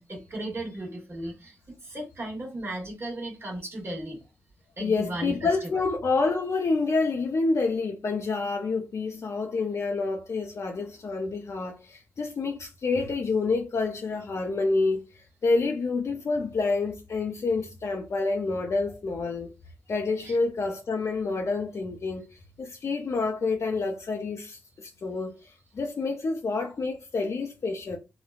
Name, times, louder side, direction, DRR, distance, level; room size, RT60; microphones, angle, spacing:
voice 1, 0.0-4.2 4.8-5.7 20.2-20.4, right 1 dB, 45° right, 1.2 m, -36 dB
voice 2, 4.8-19.5 19.9-22.3 22.6-28.0, left 3 dB, 55° left, 0.5 m, -28 dB
4.0 x 2.1 x 2.3 m
supercardioid pair, 40°, 6 cm